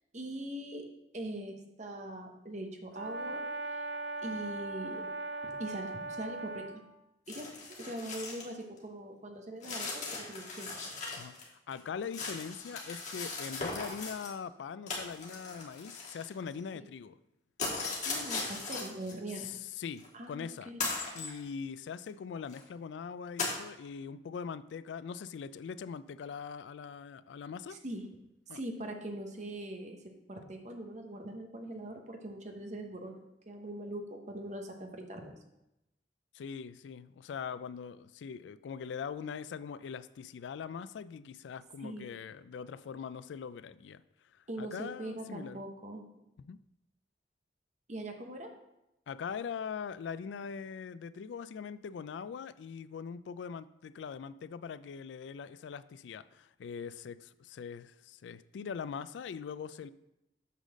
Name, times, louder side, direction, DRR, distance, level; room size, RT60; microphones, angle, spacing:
voice 1, 0.1-0.8 1.1-3.4 3.7-3.9 4.2-5.1 5.4-6.8 7.3-7.5 7.8-10.7 16.7-16.9 17.7-19.5 20.1-20.9 27.7-28.1 28.5-30.0 30.3-35.4 41.8-42.1 44.5-46.0 47.9-48.5, right 1 dB, 40° right, 3 dB, 1.0 m, -42 dB
Brass instrument, 2.9-6.8, right 2 dB, 70° right, 0.7 m, -39 dB
sound 1, 7.3-8.5 8.8-8.9 9.6-11.4 11.7-14.3 14.9-16.6 17.6-19.1 20.0-20.1 20.8-21.3 22.1-22.2 22.5-22.6 23.4-23.6, left 3 dB, 40° left, 1.8 m, -38 dB
voice 2, 11.7-17.2 19.4-20.7 21.1-27.8 28.5-28.6 36.3-44.0 44.6-45.6 46.4-46.6 49.1-59.9, left 6 dB, 85° left, 16 dB, 0.3 m, -42 dB
8.2 x 3.9 x 6.3 m, 0.89 s
head